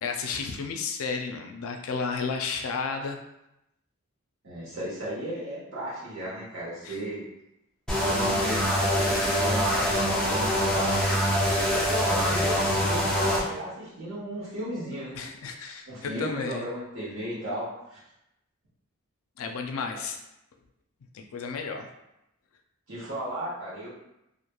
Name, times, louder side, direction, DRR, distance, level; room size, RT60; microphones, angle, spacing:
voice 1, 0.0-3.2 6.8-7.0 15.1-16.6 19.4-20.2 21.1-21.9, left 5 dB, 75° left, 4 dB, 0.4 m, -32 dB
voice 2, 4.4-7.2 8.0-15.2 15.9-18.0 19.9-20.0 22.9-23.9, equal, 65° right, -7 dB, 1.2 m, -35 dB
sound 1, 7.9-13.4, equal, 5° left, 0.4 m, -24 dB
2.9 x 2.5 x 2.2 m, 0.86 s
head